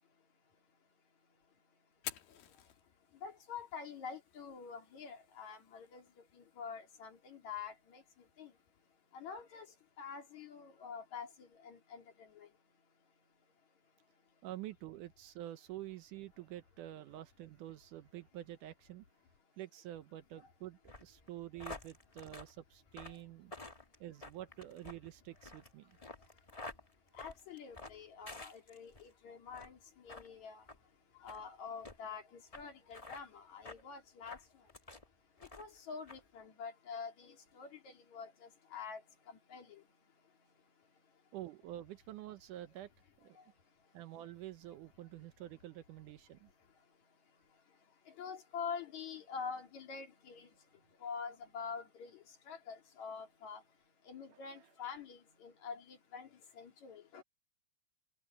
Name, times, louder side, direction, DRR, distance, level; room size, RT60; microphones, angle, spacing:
Fire, 1.9-9.9, left 11 dB, 90° left, 3.3 m, -54 dB
voice 1, 3.2-6.0 6.6-8.0 8.4-8.5 9.1-9.7 10.0-12.0 12.4-12.5 27.2-29.8 30.0-30.6 31.2-34.4 35.6-38.3 38.7-39.0 39.5-39.7 48.2-50.5 51.0-52.1 52.5-53.6 54.1-56.3 56.6-57.2, left 6 dB, 55° left, 3.9 m, -46 dB
voice 2, 14.4-19.0 19.6-23.5 24.0-25.9 41.3-42.9 43.2-43.4 43.9-46.5 54.3-54.7, right 13 dB, 75° right, 2.2 m, -48 dB
sound 1, 20.8-29.1 29.5-29.8 30.1-30.3 30.7-30.8 31.2-31.4 31.8-32.0 32.5-32.6 32.9-33.2 33.6-33.8 34.2-35.0 35.4-35.8 36.1-36.2, left 2 dB, 75° left, 0.3 m, -50 dB
omnidirectional pair, 3.9 m